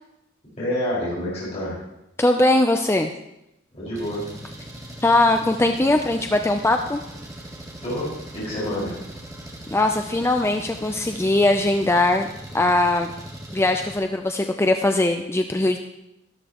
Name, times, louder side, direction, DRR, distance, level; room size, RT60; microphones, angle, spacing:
voice 1, 0.6-1.8 3.7-4.2 7.8-8.0 8.3-8.9, left 1 dB, 35° left, -10 dB, 5.2 m, -27 dB
voice 2, 2.2-3.1 5.0-7.0 9.7-12.3 12.5-13.1 13.5-15.8, left 2 dB, 15° left, 5 dB, 0.5 m, -20 dB
Engine, 4.0-14.0, right 1 dB, 15° right, 2.0 m, -40 dB
13.0 x 12.5 x 3.0 m, 0.86 s
head